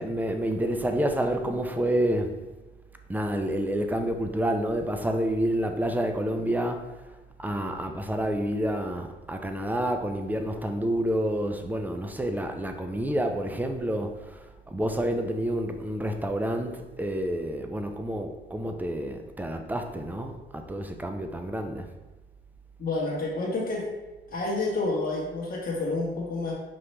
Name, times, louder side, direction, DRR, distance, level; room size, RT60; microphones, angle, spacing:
voice 1, 0.0-2.3 3.1-6.9 7.4-21.9, right 1 dB, 10° right, 5 dB, 0.5 m, -29 dB
voice 2, 22.8-23.9 24.3-26.5, left 2 dB, 45° left, -5 dB, 1.3 m, -29 dB
5.3 x 2.9 x 3.3 m, 1.2 s
cardioid pair, 90°, 20 cm